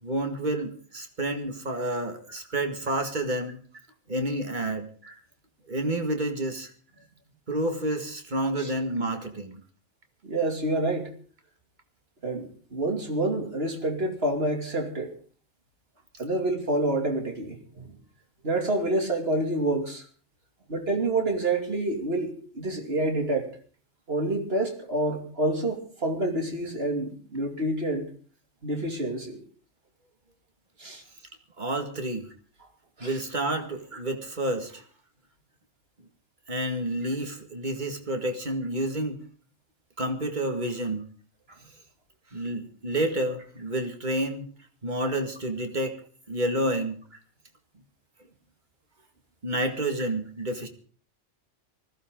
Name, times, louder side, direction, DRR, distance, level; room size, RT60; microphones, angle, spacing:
voice 1, 0.0-3.6 4.1-4.9 5.7-6.7 7.5-9.6 31.6-32.3 33.0-34.8 36.5-39.2 40.0-41.1 42.3-44.5 44.8-46.0 46.3-47.0 49.4-50.7, right 1 dB, 40° right, 5 dB, 2.1 m, -29 dB
voice 2, 10.2-11.1 12.2-15.1 16.2-18.0 18.4-20.0 20.7-23.5 24.1-28.1 28.6-29.4 30.8-31.0 33.0-33.2 33.9-34.0 41.5-41.6 50.0-50.1, right 2 dB, 60° right, 3 dB, 3.0 m, -28 dB
20.0 x 15.5 x 3.8 m, 0.44 s
omnidirectional pair, 1.2 m